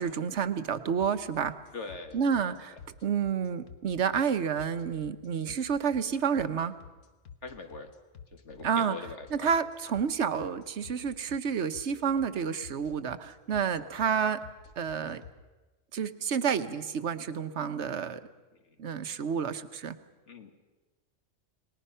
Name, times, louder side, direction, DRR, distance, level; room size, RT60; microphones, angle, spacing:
voice 1, 0.0-1.5 2.1-2.8 3.0-6.7 8.6-9.0 9.3-14.4 14.8-15.2 15.9-18.2 18.8-20.0, right 7 dB, 65° right, 11 dB, 1.2 m, -29 dB
sound 1, 1.0-15.3, left 7 dB, 85° left, 1.6 m, -50 dB
voice 2, 1.7-2.6 7.4-7.9 8.3-9.5 18.5-18.8 20.3-20.5, left 4 dB, 65° left, 6 dB, 1.9 m, -42 dB
30.0 x 19.5 x 5.6 m, 1.2 s
omnidirectional pair, 1.3 m